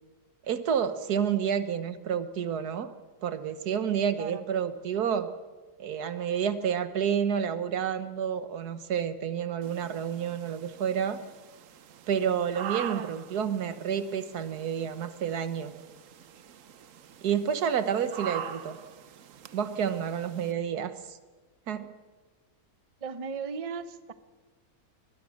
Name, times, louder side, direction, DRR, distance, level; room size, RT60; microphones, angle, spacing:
voice 1, 0.5-2.9 3.2-5.3 5.8-11.2 12.1-15.7 17.2-18.8 19.5-21.2 21.7-21.9, right 8 dB, 85° right, 12 dB, 1.6 m, -29 dB
sound 1, 9.6-20.5, right 8 dB, 60° right, 1.1 m, -44 dB
voice 2, 23.0-24.1, right 5 dB, 30° right, 12 dB, 0.8 m, -37 dB
23.0 x 19.5 x 6.4 m, 1.3 s
omnidirectional pair, 1.6 m